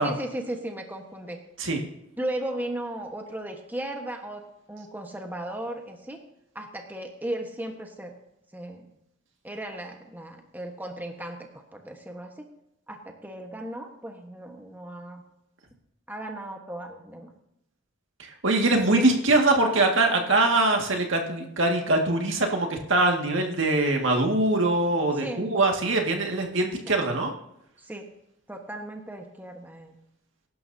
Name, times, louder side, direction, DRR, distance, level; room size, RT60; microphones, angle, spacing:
voice 1, 0.0-1.4 2.2-4.4 4.7-6.2 6.5-8.1 8.5-8.8 9.4-12.5 12.9-15.2 16.1-17.3 18.6-19.1 25.2-25.4 26.9-27.1 27.8-28.1 28.5-30.0, right 1 dB, 10° right, 3 dB, 1.3 m, -36 dB
voice 2, 18.2-27.3, right 2 dB, 70° right, 2 dB, 2.0 m, -23 dB
22.0 x 11.5 x 2.8 m, 0.82 s
head